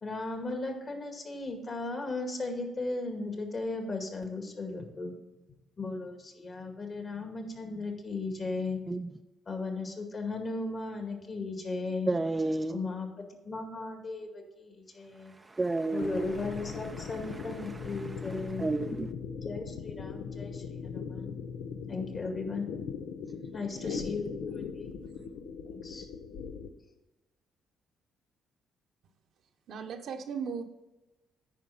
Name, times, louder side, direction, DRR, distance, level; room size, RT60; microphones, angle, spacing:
voice 1, 0.0-5.1 5.8-8.8 9.5-12.1 12.7-15.4 15.9-18.7 19.4-21.3 21.9-22.7 23.5-24.9 25.7-26.1, left 3 dB, 45° left, 4 dB, 2.0 m, -36 dB
voice 2, 12.1-12.8 15.5-16.2 18.0-18.3 18.6-19.1, right 2 dB, 20° right, 7 dB, 0.4 m, -31 dB
sound 1, 16.0-26.7, left 6 dB, 90° left, 0.7 m, -39 dB
voice 3, 23.5-24.3 25.0-25.2 29.7-30.6, right 6 dB, 70° right, 5 dB, 0.9 m, -39 dB
9.4 x 5.2 x 5.7 m, 1.0 s
cardioid pair, 90°, 0 cm